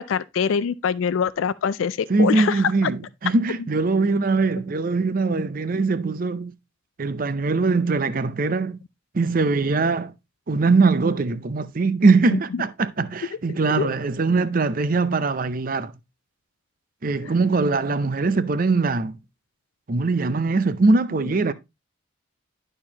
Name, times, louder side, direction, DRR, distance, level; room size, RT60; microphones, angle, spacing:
voice 1, 0.0-2.9 12.3-12.4 13.8-13.9 17.2-17.3, left 7 dB, 85° left, 0.4 m, -24 dB
voice 2, 2.1-6.5 7.0-8.8 9.1-10.1 10.5-15.9 17.0-19.2 19.9-21.5, right 3 dB, 45° right, 0.6 m, -21 dB
12.0 x 4.4 x 2.8 m
head